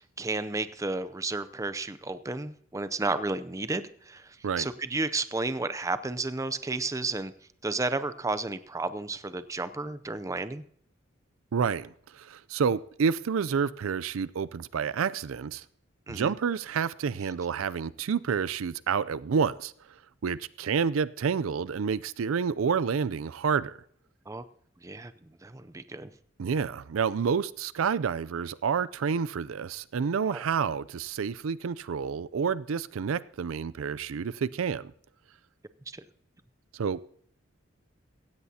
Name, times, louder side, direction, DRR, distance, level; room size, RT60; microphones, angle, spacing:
voice 1, 0.2-4.3 4.6-7.3 7.6-10.6 16.1-16.3 24.3-24.4 24.8-25.1 25.4-26.1 30.3-30.4, right 3 dB, 15° right, 0.5 m, -32 dB
voice 2, 11.5-15.6 16.1-19.7 20.2-23.8 26.4-34.9 36.7-37.0, right 6 dB, 85° right, 0.4 m, -29 dB
16.5 x 15.5 x 2.8 m
head